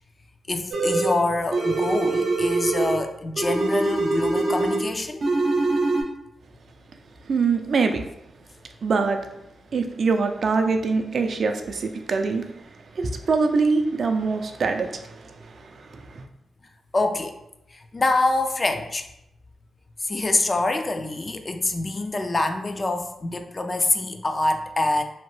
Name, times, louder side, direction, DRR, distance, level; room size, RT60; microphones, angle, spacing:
voice 1, 0.5-5.3 16.9-17.4 17.7-19.1 20.0-25.0, left 2 dB, 35° left, 6 dB, 0.3 m, -25 dB
sound 1, 0.7-1.2 1.5-3.0 3.4-4.9 5.2-6.0, right 2 dB, 80° right, 0.7 m, -23 dB
voice 2, 7.3-8.0 8.8-9.2 9.7-12.4 12.9-16.2, right 4 dB, 60° right, 6 dB, 0.3 m, -24 dB
2.8 x 2.1 x 3.1 m, 0.83 s
cardioid pair, 60°, 0 cm